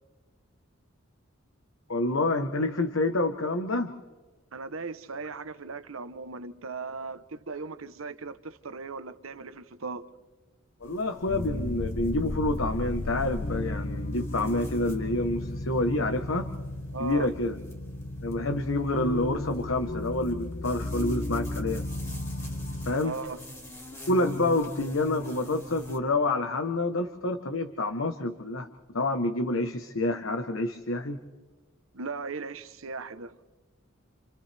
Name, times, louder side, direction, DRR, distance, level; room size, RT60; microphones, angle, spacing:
voice 1, 1.9-3.9 10.8-16.5 17.0-17.5 18.2-21.8 22.9-23.2 24.1-28.7 28.9-31.2, left 2 dB, 75° left, 1.2 m, -28 dB
voice 2, 4.5-10.1 16.9-17.3 23.0-23.4 31.9-33.4, right 4 dB, 80° right, 1.0 m, -38 dB
sound 1, 10.8-26.0, left 1 dB, 15° left, 2.6 m, -47 dB
sound 2, 11.3-23.0, left 1 dB, 40° left, 0.6 m, -34 dB
29.0 x 28.5 x 3.5 m
head